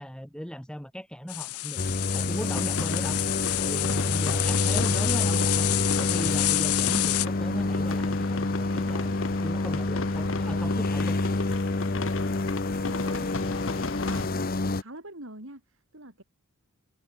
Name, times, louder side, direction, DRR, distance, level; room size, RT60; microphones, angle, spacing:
voice 1, 0.0-1.8 2.1-3.2 3.6-5.7 6.0-9.1 9.4-11.2, equal, 5° left, 2.2 m, -37 dB
sound 1, 1.3-7.3, left 19 dB, 80° left, 0.5 m, -28 dB
sound 2, 1.8-14.8, left 2 dB, 40° left, 0.9 m, -28 dB
sound 3, 2.5-14.3, left 3 dB, 60° left, 1.4 m, -37 dB
voice 2, 12.8-13.3 14.0-14.4 14.8-16.2, right 1 dB, 60° right, 5.7 m, -44 dB
head